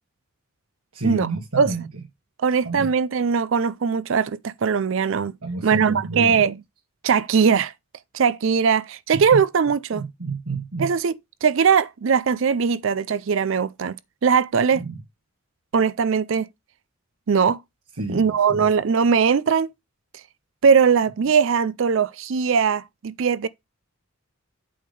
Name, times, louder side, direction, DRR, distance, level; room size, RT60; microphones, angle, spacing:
voice 1, 0.9-1.9 2.6-2.9 5.4-6.5 9.1-9.2 9.9-10.9 14.7-15.0 17.9-18.7, right 3 dB, 90° right, 2.0 m, -30 dB
voice 2, 2.4-5.3 5.6-6.5 7.0-7.7 8.1-10.0 10.8-11.1 11.4-14.0 14.2-14.8 15.7-16.5 17.3-17.6 18.1-19.7 20.6-23.5, right 6 dB, 60° right, 0.4 m, -20 dB
8.6 x 3.6 x 6.7 m
head